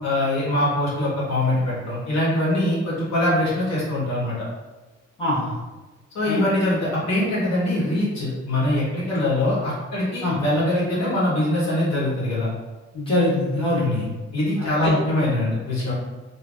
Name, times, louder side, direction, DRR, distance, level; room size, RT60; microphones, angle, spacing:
voice 1, 0.0-4.5 6.1-12.5 13.8-15.9, left 1 dB, 60° left, -7 dB, 1.3 m, -23 dB
voice 2, 5.2-5.6 6.3-6.4 10.2-10.4 12.9-14.0 14.6-14.9, left 1 dB, 20° left, -8 dB, 1.3 m, -23 dB
3.2 x 2.2 x 2.6 m, 1.2 s
cardioid pair, 90°, 30 cm